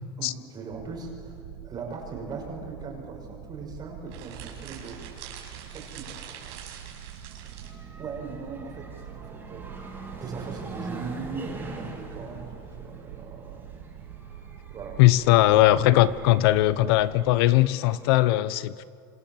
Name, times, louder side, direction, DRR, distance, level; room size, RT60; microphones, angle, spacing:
voice 1, 0.2-5.0 5.7-6.2 8.0-13.7 14.7-15.0 15.5-15.6 16.8-17.0, right 4 dB, 30° right, 1 dB, 6.0 m, -39 dB
sound 1, 0.7-17.4, right 10 dB, 85° right, 1.9 m, -45 dB
sound 2, 4.1-7.8, right 8 dB, 70° right, 6.4 m, -44 dB
sound 3, 7.3-18.3, right 3 dB, 15° right, 6.5 m, -44 dB
voice 2, 15.0-18.8, left 15 dB, 75° left, 16 dB, 0.9 m, -20 dB
26.5 x 25.5 x 7.5 m, 2.3 s
supercardioid pair, 135°, 13 cm